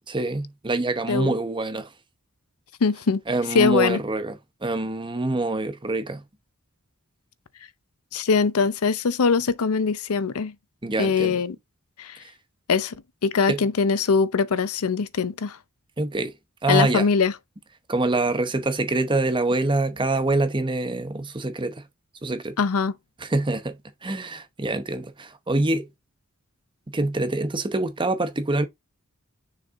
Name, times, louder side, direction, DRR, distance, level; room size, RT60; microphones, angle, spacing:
voice 1, 0.1-1.9 3.3-6.2 10.8-11.4 12.2-12.3 13.5-13.6 16.0-16.3 16.6-17.1 17.9-21.8 22.2-22.6 23.2-25.9 26.9-28.7, right 2 dB, 20° right, 0.8 m, -25 dB
voice 2, 2.8-3.2 3.5-4.0 8.1-10.5 11.0-11.6 12.0-12.2 12.7-13.0 13.2-15.6 16.7-17.3 22.6-22.9, left 5 dB, 85° left, 0.6 m, -22 dB
6.5 x 4.0 x 3.6 m
head